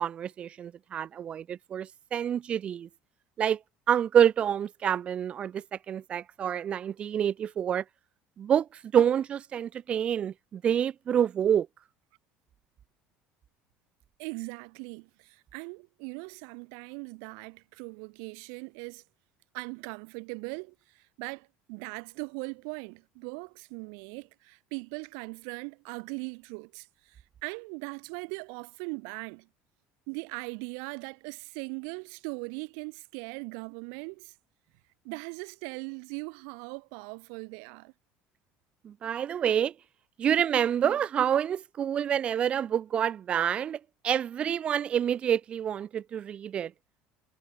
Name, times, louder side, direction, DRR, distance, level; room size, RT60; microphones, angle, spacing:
voice 1, 0.0-2.9 3.4-3.6 3.9-7.8 8.4-11.7 38.8-39.7 40.2-43.8 44.0-46.7, right 9 dB, 30° right, 0.3 m, -27 dB
voice 2, 14.2-19.0 19.5-29.5 30.1-34.3 35.0-37.9, right 40 dB or more, 80° right, 1.2 m, -40 dB
cardioid pair, 165°, 4 cm